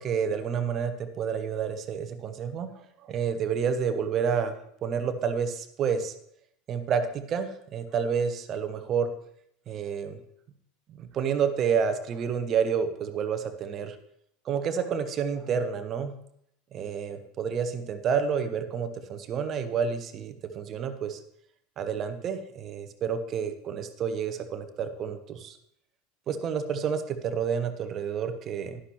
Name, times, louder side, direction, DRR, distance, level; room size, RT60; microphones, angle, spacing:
voice 1, 0.0-4.6 4.8-6.1 6.7-9.1 9.7-10.2 10.9-14.0 14.4-16.1 16.7-21.2 21.8-25.6 26.3-28.8, right 7 dB, 35° right, 10 dB, 1.0 m, -29 dB
11.5 x 11.0 x 3.0 m, 0.71 s
figure-of-eight pair, 75°, 0 cm